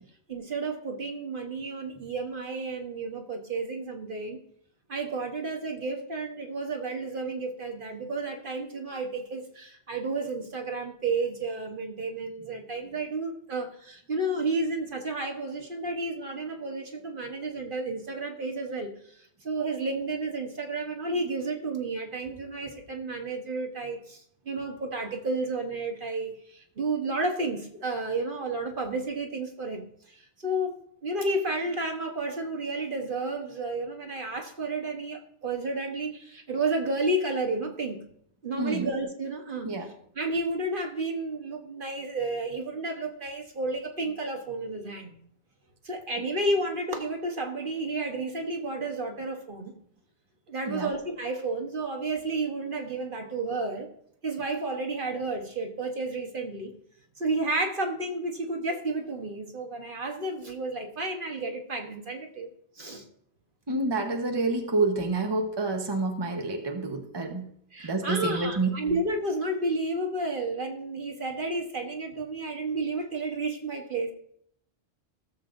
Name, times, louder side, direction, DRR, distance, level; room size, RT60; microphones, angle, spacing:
voice 1, 0.3-4.4 4.9-18.9 19.4-24.2 24.5-30.7 31.0-38.0 38.4-39.7 40.1-45.2 45.8-49.7 50.5-53.9 54.2-56.7 57.2-62.5 62.8-63.0 67.7-74.1, right 2 dB, 50° right, 3 dB, 1.3 m, -31 dB
voice 2, 63.7-67.4 67.8-68.7, right 3 dB, 25° right, 3 dB, 1.1 m, -28 dB
16.5 x 7.5 x 2.6 m, 0.68 s
omnidirectional pair, 1.1 m